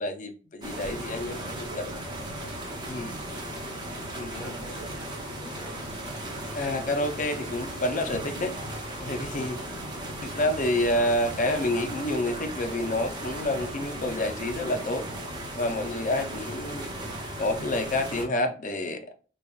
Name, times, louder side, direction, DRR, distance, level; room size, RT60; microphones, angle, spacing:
voice 1, 0.0-1.7 2.9-3.1 4.1-4.6 6.5-8.5 9.0-9.6 10.2-15.1 15.5-16.8 17.4-19.1, left 1 dB, 40° left, 0.6 m, -28 dB
sound 1, 0.6-18.2, right 1 dB, 20° right, 0.8 m, -36 dB
voice 2, 1.0-2.5 2.8-3.2 4.3-6.0 7.9-8.1 8.3-8.5 9.5-10.1 13.9-14.3 15.8-15.9 16.2-16.4, right 2 dB, 85° right, 1.1 m, -47 dB
sound 2, 9.5-10.0 10.4-11.5 11.7-14.0, right 3 dB, 50° right, 0.5 m, -55 dB
5.3 x 2.4 x 2.4 m
head